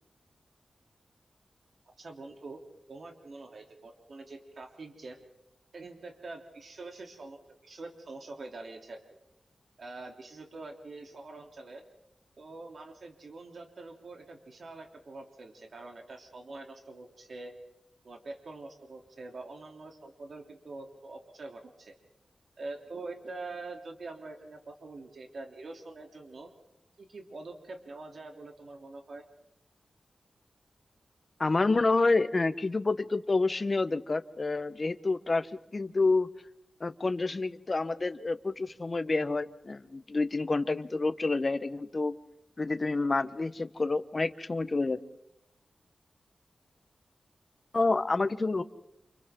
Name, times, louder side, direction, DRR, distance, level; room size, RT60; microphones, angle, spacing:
voice 1, 2.0-2.6 2.9-5.2 5.7-7.4 7.6-9.0 9.8-11.8 12.4-17.5 18.0-21.9 22.6-26.5 27.0-29.2, right 3 dB, 65° right, 2 dB, 3.3 m, -45 dB
voice 2, 31.4-35.5 35.7-36.3 36.8-42.1 42.6-45.0 47.7-48.6, left 3 dB, 40° left, 12 dB, 1.1 m, -28 dB
29.0 x 28.5 x 3.9 m, 0.83 s
wide cardioid pair, 85°, 0 cm